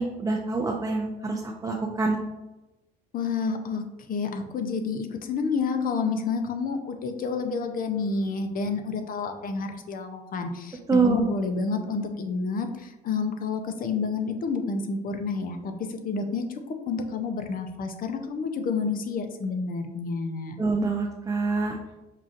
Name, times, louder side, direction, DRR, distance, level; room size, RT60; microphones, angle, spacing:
voice 1, 0.0-2.2 10.9-11.2 20.6-21.8, right 3 dB, 15° right, -1 dB, 0.6 m, -25 dB
voice 2, 3.1-3.8 4.1-20.6, left 4 dB, 45° left, 7 dB, 0.6 m, -29 dB
5.6 x 2.4 x 2.5 m, 1.0 s
hypercardioid pair, 65°, 21 cm